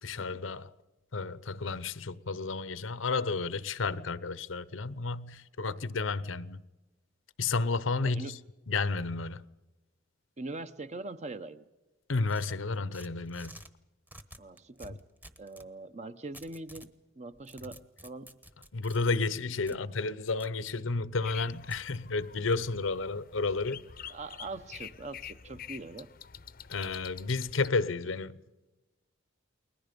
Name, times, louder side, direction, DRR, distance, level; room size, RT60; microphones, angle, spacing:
voice 1, 0.0-0.7 1.1-6.6 7.4-8.4 8.7-9.4 12.1-13.5 18.7-23.8 26.7-28.4, left 3 dB, 80° left, 0.9 m, -32 dB
voice 2, 8.0-8.4 10.4-11.6 14.4-15.0 15.4-18.4 19.6-19.8 24.1-26.1, right 2 dB, 35° right, 0.8 m, -42 dB
sound 1, 12.3-13.7 14.1-15.7 16.3-16.9 17.3-19.0 19.7-19.8 20.4-20.8 21.7-21.8, right 1 dB, 10° right, 1.0 m, -51 dB
sound 2, 21.2-27.7, left 8 dB, 45° left, 0.7 m, -47 dB
29.5 x 21.5 x 5.3 m
head